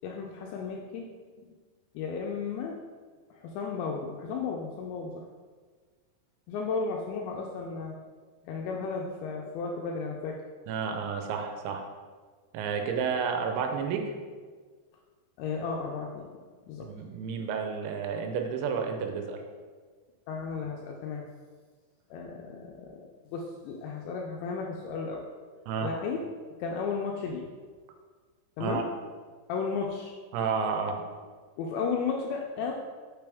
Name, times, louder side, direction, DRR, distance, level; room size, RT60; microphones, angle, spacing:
voice 1, 0.0-1.1 1.4-1.5 1.9-2.8 3.3-5.2 6.5-8.0 8.4-10.4 15.4-16.3 16.7-16.9 20.3-21.2 22.1-25.2 25.8-26.2 26.6-27.5 28.6-28.9 29.5-30.2 31.6-32.7, left 5 dB, 80° left, 0 dB, 2.8 m, -34 dB
voice 2, 10.7-11.8 12.5-14.1 16.8-19.4 25.7-25.9 28.6-28.8 30.3-31.0, right 6 dB, 85° right, 5 dB, 3.0 m, -31 dB
6.8 x 6.1 x 3.4 m, 1.5 s
omnidirectional pair, 5.3 m